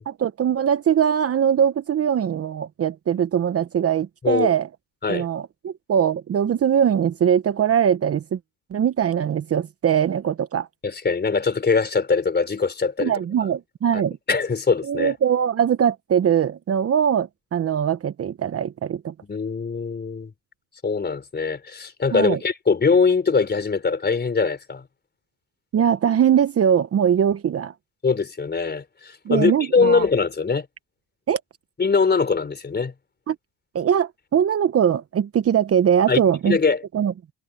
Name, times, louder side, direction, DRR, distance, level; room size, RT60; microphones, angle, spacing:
voice 1, 0.1-4.7 5.1-8.4 8.7-10.7 13.0-14.2 14.9-19.1 22.1-22.4 25.7-27.7 29.2-30.1 31.3-31.4 33.3-33.4 33.7-36.6 36.9-37.1, right 8 dB, 35° right, 1.1 m, -21 dB
voice 2, 10.8-13.1 13.9-14.0 14.3-15.1 19.3-20.3 20.8-24.8 28.0-30.7 31.8-32.9 36.1-36.8, left 5 dB, 25° left, 4.1 m, -22 dB
supercardioid pair, 95°, 39 cm